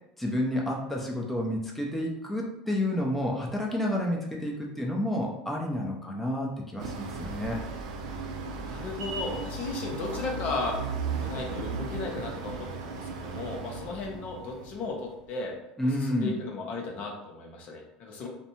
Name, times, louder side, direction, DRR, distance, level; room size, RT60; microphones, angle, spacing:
voice 1, 0.2-7.6 15.8-16.4, left 1 dB, 5° left, -2 dB, 0.6 m, -30 dB
sound 1, 6.8-15.1, right 4 dB, 75° right, 0.4 m, -36 dB
voice 2, 8.6-10.8 11.2-15.5 16.0-18.3, left 3 dB, 50° left, 0 dB, 0.7 m, -35 dB
2.5 x 2.1 x 2.8 m, 0.87 s
hypercardioid pair, 85°, 3 cm